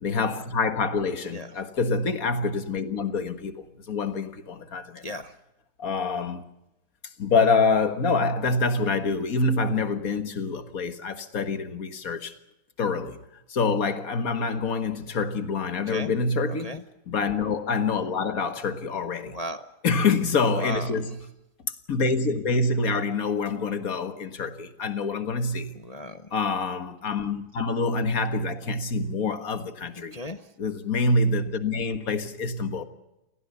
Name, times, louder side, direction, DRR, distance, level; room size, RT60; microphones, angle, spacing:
voice 1, 0.0-5.2 5.8-6.5 7.2-12.4 12.8-13.2 13.5-16.8 17.1-19.4 19.8-21.1 21.9-25.7 26.3-30.2 30.6-32.8, left 4 dB, 45° left, 1.8 m, -26 dB
voice 2, 5.0-5.3 15.9-16.1 16.5-16.8 19.2-19.6 20.5-20.9 25.8-26.3 30.1-30.5, equal, 70° left, 0.3 m, -36 dB
29.0 x 18.0 x 6.8 m
omnidirectional pair, 2.2 m